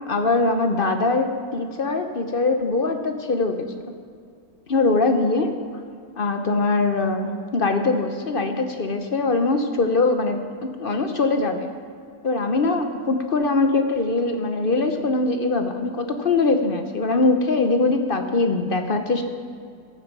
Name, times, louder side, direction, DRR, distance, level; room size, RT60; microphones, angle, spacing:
voice 1, 0.1-3.6 4.7-5.5 6.2-10.4 10.8-11.7 12.2-19.3, left 3 dB, 45° left, 6 dB, 0.8 m, -22 dB
14.5 x 8.7 x 6.0 m, 2.3 s
omnidirectional pair, 1.7 m